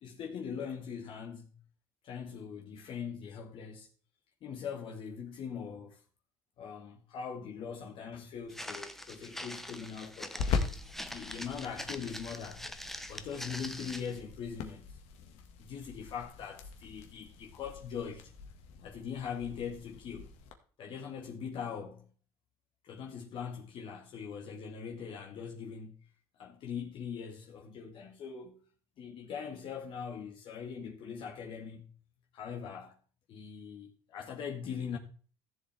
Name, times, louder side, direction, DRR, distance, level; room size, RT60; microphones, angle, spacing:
voice 1, 0.0-1.6 2.0-3.9 4.4-6.0 6.6-10.5 11.1-12.6 13.1-15.0 15.6-18.3 18.8-20.3 20.8-22.1 22.8-25.9 26.4-28.6 29.0-31.9 32.3-33.0 33.3-35.0, left 7 dB, 50° left, 1.9 m, -41 dB
sound 1, 8.3-20.5, left 5 dB, 70° left, 1.9 m, -42 dB
Walk footsteps, 8.5-14.2, left 1 dB, 5° left, 1.0 m, -44 dB
15.0 x 7.5 x 3.5 m
supercardioid pair, 110°, 11 cm